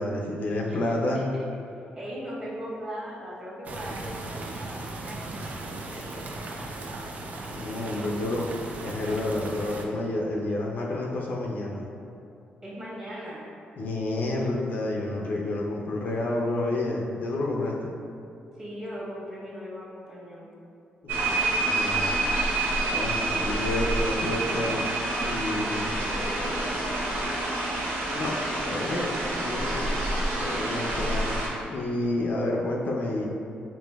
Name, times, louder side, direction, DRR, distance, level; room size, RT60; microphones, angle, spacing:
voice 1, 0.0-1.2 7.4-8.5 8.8-11.9 13.8-17.9 21.0-22.1 22.9-24.9 25.2-25.9 28.1-28.4 28.7-29.9 30.4-31.3 31.7-33.2, left 1 dB, 60° left, -2 dB, 0.5 m, -29 dB
voice 2, 0.7-1.4 1.9-6.7 12.6-13.5 18.5-20.5 25.5-27.6, equal, 20° right, -8 dB, 1.3 m, -40 dB
sound 1, 3.7-9.9, right 2 dB, 45° right, 0.4 m, -37 dB
sound 2, 21.1-31.5, right 2 dB, 80° right, 0.7 m, -28 dB
5.1 x 2.6 x 2.3 m, 2.6 s
cardioid pair, 95°, 3 cm